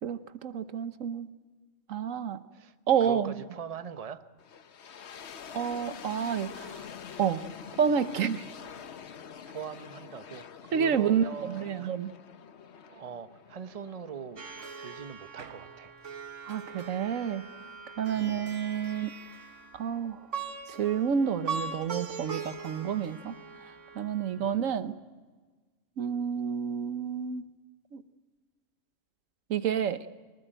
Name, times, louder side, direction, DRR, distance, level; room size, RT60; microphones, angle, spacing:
voice 1, 0.0-1.3 1.9-2.4 2.9-3.3 5.5-6.9 7.2-7.4 7.8-8.4 10.7-12.1 16.5-17.4 18.0-19.1 19.7-20.2 20.7-23.3 23.9-25.0 26.0-27.4 27.9-28.0 29.5-30.1, right 7 dB, 85° right, 12 dB, 1.3 m, -29 dB
voice 2, 3.0-4.2 9.5-11.9 12.8-14.4 14.8-15.9 18.1-18.4 24.3-24.6, right 7 dB, 30° right, 10 dB, 1.0 m, -42 dB
sound 1, 4.4-15.3, left 7 dB, 60° left, 1.1 m, -46 dB
Plucked string instrument, 14.4-24.7, right 5 dB, 65° right, 1.8 m, -41 dB
24.0 x 20.0 x 9.1 m, 1.4 s
omnidirectional pair, 1.3 m